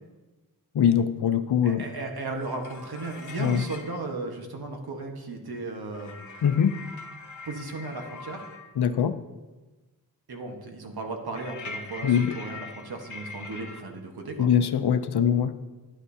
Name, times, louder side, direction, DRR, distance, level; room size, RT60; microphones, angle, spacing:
voice 1, 0.7-1.8 3.4-3.6 6.4-6.8 8.8-9.2 12.0-12.4 14.4-15.5, left 8 dB, 80° left, 11 dB, 0.6 m, -22 dB
voice 2, 1.6-6.2 7.4-8.4 10.3-14.5, right 3 dB, 70° right, 2 dB, 1.4 m, -35 dB
sound 1, 2.4-4.0 5.9-8.7 11.4-13.8, left 3 dB, 50° left, 1.0 m, -42 dB
11.5 x 9.9 x 2.8 m, 1.2 s
wide cardioid pair, 120°, 39 cm